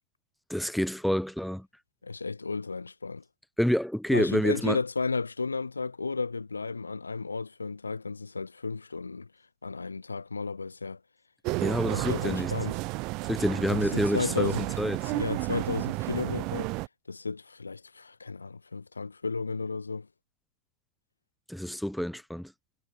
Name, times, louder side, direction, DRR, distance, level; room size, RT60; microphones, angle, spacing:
voice 1, 0.5-1.7 3.6-4.8 11.6-12.5 13.3-15.1 21.5-22.5, equal, ahead, 0.6 m, -28 dB
voice 2, 2.0-3.2 4.1-9.3 9.6-11.0 11.9-12.8 13.7-14.7 15.0-16.7 17.1-20.1, left 4 dB, 80° left, 1.1 m, -33 dB
sound 1, 11.4-16.9, right 25 dB, 40° right, 0.4 m, -32 dB
figure-of-eight pair, 90°, 0 cm